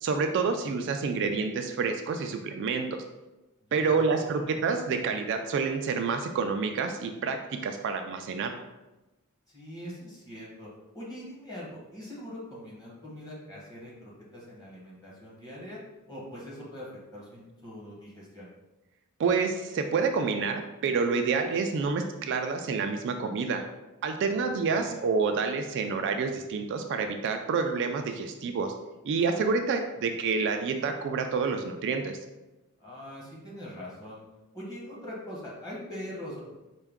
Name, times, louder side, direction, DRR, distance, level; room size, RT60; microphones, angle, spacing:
voice 1, 0.0-2.9 3.7-7.4 7.6-8.5 19.2-23.6 24.0-28.7 29.0-32.2, right 5 dB, 55° right, 6 dB, 0.3 m, -28 dB
voice 2, 3.7-4.5 9.5-15.8 16.1-18.5 24.3-25.0 32.8-34.2 34.5-36.4, equal, 15° left, -6 dB, 1.2 m, -43 dB
4.5 x 2.2 x 3.5 m, 1.0 s
head